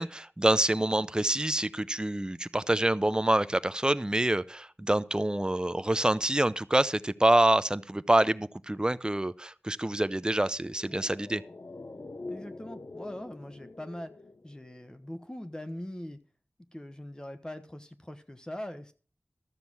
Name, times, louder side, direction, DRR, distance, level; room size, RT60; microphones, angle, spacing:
voice 1, 0.0-11.4, right 1 dB, 20° right, 0.7 m, -26 dB
sound 1, 10.6-15.2 15.4-15.5, left 2 dB, 60° left, 0.7 m, -45 dB
voice 2, 12.3-14.1 14.4-16.2 16.7-18.9, left 1 dB, 20° left, 1.1 m, -41 dB
13.5 x 6.8 x 6.1 m
wide cardioid pair, 45°, 4 cm